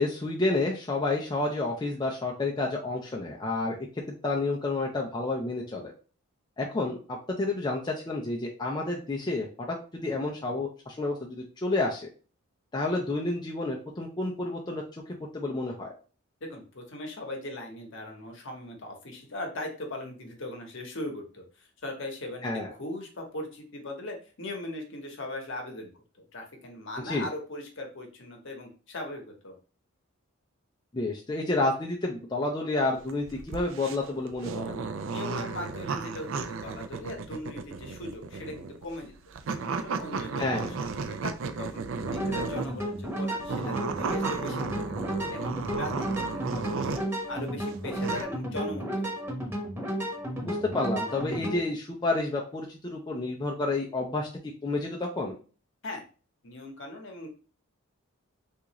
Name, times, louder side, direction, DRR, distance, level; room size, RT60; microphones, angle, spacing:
voice 1, 0.0-5.9 6.6-12.1 12.7-14.8 15.1-15.9 22.4-22.7 27.0-27.3 30.9-34.8 40.4-40.7 50.4-54.3 54.6-55.4, left 2 dB, 20° left, -2 dB, 0.4 m, -30 dB
voice 2, 16.4-26.0 26.3-29.6 35.1-39.1 39.4-40.7 41.1-45.5 45.8-47.0 47.3-49.3 55.8-56.0 56.4-57.3, left 1 dB, 55° left, 2 dB, 0.9 m, -39 dB
sound 1, 33.0-42.8 43.4-47.2 47.6-48.2, right 5 dB, 60° right, 0.3 m, -34 dB
sound 2, 42.0-51.6, right 1 dB, 10° right, 1.0 m, -33 dB
3.7 x 2.4 x 2.9 m, 0.37 s
head